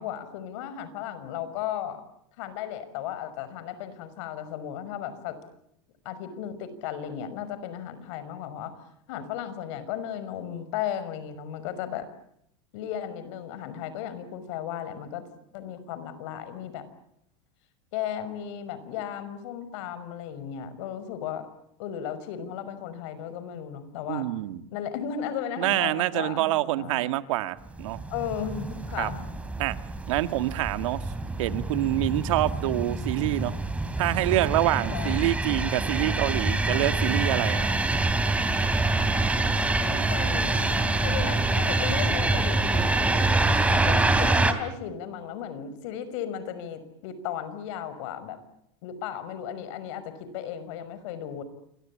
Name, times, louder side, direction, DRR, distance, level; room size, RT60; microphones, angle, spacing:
voice 1, 0.0-2.0 2.4-5.4 6.0-8.7 9.1-12.1 12.7-15.3 15.5-16.9 17.9-21.5 21.8-24.3 24.7-27.1 28.1-29.3 34.9-35.2 39.8-48.4 48.8-51.4, left 9 dB, 65° left, 13 dB, 5.8 m, -35 dB
voice 2, 24.1-24.6 25.6-28.0 29.0-29.1 29.6-29.8 30.1-31.1 31.4-33.5 34.0-37.7, right 15 dB, 75° right, 11 dB, 2.0 m, -26 dB
sound 1, 27.8-44.5, right 2 dB, 10° right, 3.1 m, -26 dB
28.5 x 23.5 x 8.6 m, 0.77 s
supercardioid pair, 135°, 16 cm